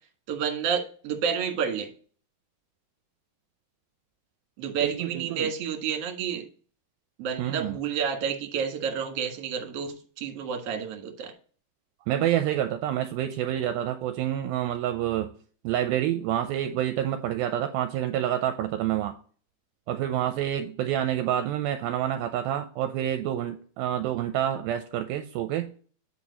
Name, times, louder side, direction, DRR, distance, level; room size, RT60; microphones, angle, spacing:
voice 1, 0.3-1.9 4.6-6.4 7.2-11.3, right 7 dB, 55° right, 2.0 m, -30 dB
voice 2, 4.8-5.5 7.4-7.8 12.1-15.3 15.6-19.2 19.9-25.7, right 11 dB, 80° right, 2.3 m, -28 dB
8.7 x 4.9 x 4.1 m
omnidirectional pair, 4.5 m